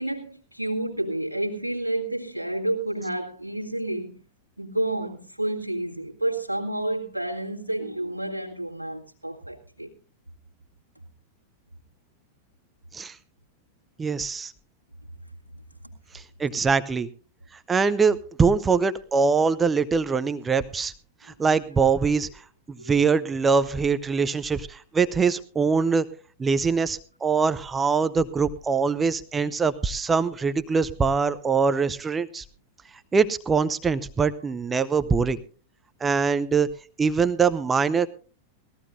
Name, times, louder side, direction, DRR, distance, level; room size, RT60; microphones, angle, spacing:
voice 1, 0.0-4.1 4.6-9.9 22.8-23.2, right 1 dB, 85° right, -1 dB, 1.9 m, -30 dB
voice 2, 14.0-14.5 16.1-17.1 17.7-20.9 21.2-22.3 22.7-26.1 26.4-32.4 33.1-35.4 36.0-36.7 37.0-38.1, right 5 dB, 15° right, 14 dB, 0.6 m, -23 dB
20.0 x 14.5 x 2.6 m, 0.38 s
figure-of-eight pair, 90°, 0 cm